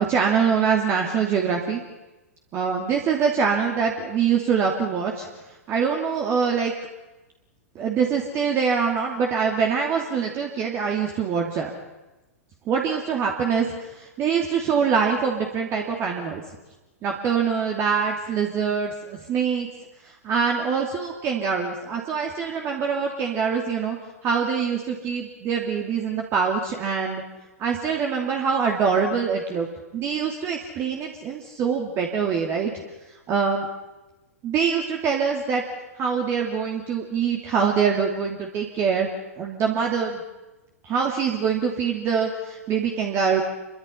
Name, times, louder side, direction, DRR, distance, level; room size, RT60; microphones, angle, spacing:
voice 1, 0.0-1.8 2.5-5.3 5.7-6.7 7.7-11.7 12.7-16.4 17.0-19.7 20.2-24.0 24.2-27.2 27.6-29.7 29.9-32.7 33.3-33.7 34.4-35.6 36.0-39.1 39.4-40.2 40.8-43.4, right 6 dB, 30° right, 1 dB, 2.9 m, -24 dB
28.5 x 24.0 x 5.7 m, 1.1 s
figure-of-eight pair, 105°, 9 cm